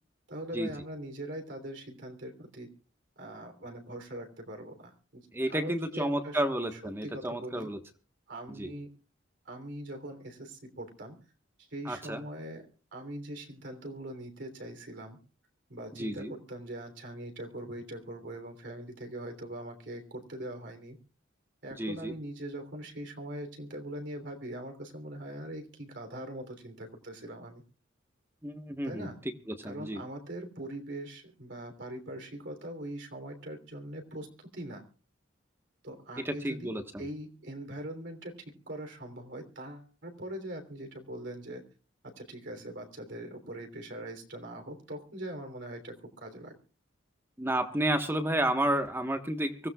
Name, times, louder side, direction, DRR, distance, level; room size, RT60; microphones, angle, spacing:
voice 1, 0.3-2.7 3.2-6.4 6.7-7.7 8.3-8.9 9.4-11.2 11.6-15.2 15.7-21.0 21.6-27.6 28.8-29.2 29.6-34.8 35.8-36.7 37.0-41.6 42.0-46.5, right 1 dB, 60° right, 5 dB, 3.3 m, -42 dB
voice 2, 5.3-7.8 8.6-8.7 11.8-12.2 16.0-16.3 21.8-22.1 28.4-29.1 29.5-30.0 36.2-37.0 47.4-49.7, right 1 dB, 10° right, 6 dB, 1.3 m, -31 dB
24.5 x 16.5 x 2.4 m, 0.36 s
head